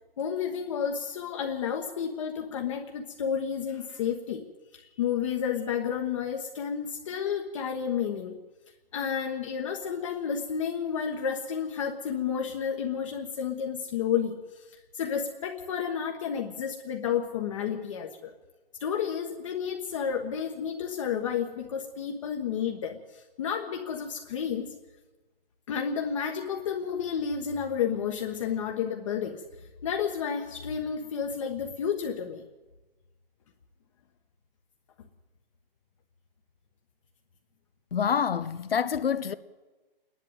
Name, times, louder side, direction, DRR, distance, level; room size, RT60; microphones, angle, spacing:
voice 1, 0.2-4.4 4.7-8.4 8.9-18.3 18.8-24.7 25.7-29.4 29.8-32.4, left 7 dB, 35° left, 1.4 m, -31 dB
voice 2, 37.9-39.3, left 7 dB, 75° left, 1.2 m, -27 dB
27.0 x 11.0 x 9.2 m
hypercardioid pair, 165°, 29 cm